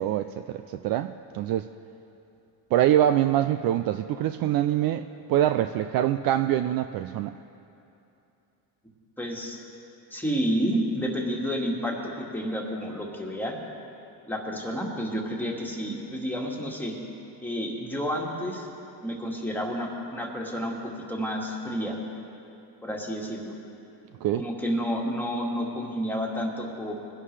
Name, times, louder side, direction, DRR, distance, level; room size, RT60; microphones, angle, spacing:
voice 1, 0.0-1.7 2.7-7.3 24.2-24.4, right 12 dB, 55° right, 9 dB, 0.4 m, -24 dB
voice 2, 9.2-9.6 10.1-13.5 14.3-16.9 17.4-18.7 19.0-22.0 22.8-23.5 24.4-26.9, equal, 5° left, -2 dB, 1.8 m, -30 dB
21.5 x 11.0 x 3.3 m, 2.8 s
cardioid pair, 110°, 45 cm